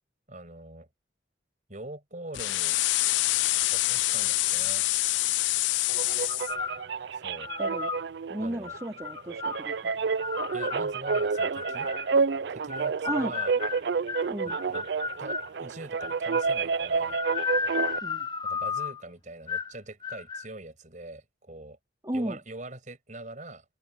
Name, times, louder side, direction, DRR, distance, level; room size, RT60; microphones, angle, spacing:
voice 1, 0.3-0.9 1.7-2.8 3.7-4.9 7.1-7.5 8.4-8.7 10.5-11.9 12.5-13.5 14.7-14.9 15.2-17.2 18.4-21.8 22.1-23.6, right 2 dB, 40° right, 6.3 m, -43 dB
sound 1, 2.3-6.5, left 19 dB, 70° left, 0.3 m, -26 dB
sound 2, 5.9-18.0, right 5 dB, 60° right, 0.4 m, -30 dB
sound 3, 6.5-6.9 7.4-8.0 8.7-9.6 10.2-12.1 12.7-15.5 16.0-16.6 17.0-19.0 19.5-19.8 20.0-20.5, left 5 dB, 25° left, 1.0 m, -34 dB
voice 2, 7.6-7.9 8.3-9.9 13.0-13.4 14.3-14.6 18.0-18.3 22.0-22.4, right 1 dB, 20° right, 2.6 m, -34 dB
open air
head